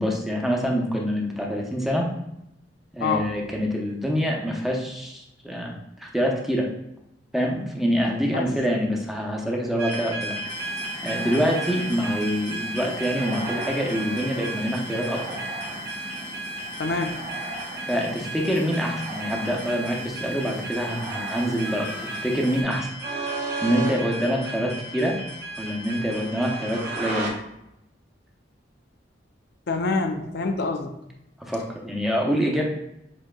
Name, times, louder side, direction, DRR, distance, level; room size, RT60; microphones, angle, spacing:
voice 1, 0.0-2.1 2.9-6.7 7.3-10.7 11.0-15.4 17.9-22.9 23.6-25.2 25.6-27.3 31.4-32.7, equal, ahead, -1 dB, 0.7 m, -26 dB
voice 2, 3.0-3.3 8.3-8.5 16.8-17.2 29.7-31.0, left 3 dB, 65° left, 6 dB, 0.5 m, -26 dB
sound 1, 9.8-27.3, right 2 dB, 65° right, 1.5 m, -34 dB
sound 2, 10.5-22.6, right 2 dB, 45° right, 1.1 m, -39 dB
7.2 x 2.8 x 2.2 m, 0.82 s
head